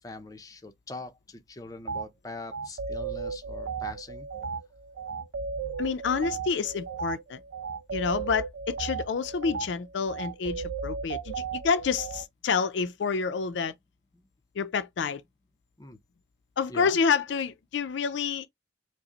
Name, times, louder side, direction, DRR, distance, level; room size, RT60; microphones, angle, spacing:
voice 1, 0.0-4.3 14.1-14.2 15.8-16.0 16.7-17.0, left 2 dB, 20° left, 0.5 m, -42 dB
sound 1, 1.9-2.1 2.5-12.2, right 5 dB, 85° right, 0.6 m, -35 dB
voice 2, 5.8-7.4 7.9-13.7 14.6-15.2 16.6-18.5, left 5 dB, 75° left, 0.4 m, -28 dB
4.8 x 2.0 x 2.9 m
head